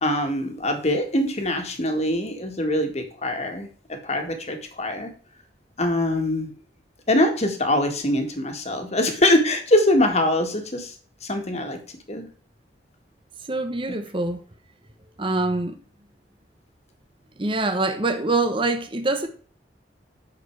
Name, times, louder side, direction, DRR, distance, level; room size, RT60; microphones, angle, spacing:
voice 1, 0.0-5.1 5.8-6.5 7.1-10.9 11.2-11.8 12.1-12.3 13.9-14.0, left 1 dB, 35° left, 1.9 m, -23 dB
voice 2, 13.5-14.4 15.2-15.8 17.4-19.3, right 2 dB, 30° right, 1.0 m, -24 dB
10.0 x 6.6 x 4.7 m
head